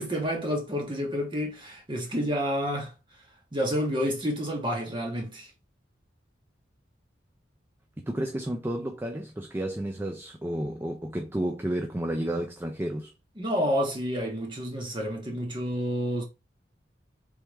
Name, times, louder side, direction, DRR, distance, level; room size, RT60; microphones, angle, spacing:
voice 1, 0.0-2.9 3.5-5.5 13.4-16.2, equal, 30° right, 1.3 m, -29 dB
voice 2, 8.0-13.1, right 1 dB, 10° right, 0.4 m, -31 dB
3.4 x 3.4 x 3.1 m
head